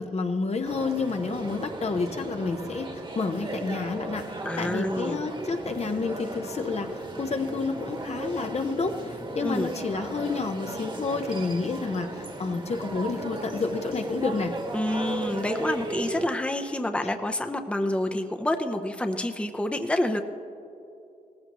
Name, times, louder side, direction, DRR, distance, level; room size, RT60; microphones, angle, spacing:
voice 1, 0.0-14.5, left 4 dB, 50° left, 6 dB, 0.9 m, -30 dB
sound 1, 0.6-16.3, right 2 dB, 35° right, 1.5 m, -36 dB
voice 2, 4.4-5.2 9.4-9.7 14.7-20.2, left 1 dB, 10° left, 6 dB, 0.8 m, -28 dB
18.0 x 15.0 x 3.1 m, 2.7 s
cardioid pair, 60°, 15 cm